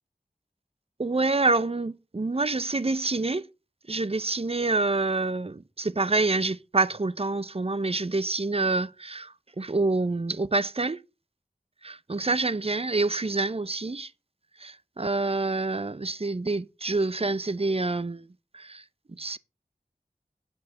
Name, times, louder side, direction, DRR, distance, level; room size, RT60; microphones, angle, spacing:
voice 1, 1.0-3.4 3.9-11.0 11.8-14.1 14.6-18.3 18.5-18.8 19.2-19.4, right 3 dB, 35° right, 0.6 m, -27 dB
8.7 x 4.7 x 7.2 m
wide cardioid pair, 40°, 16 cm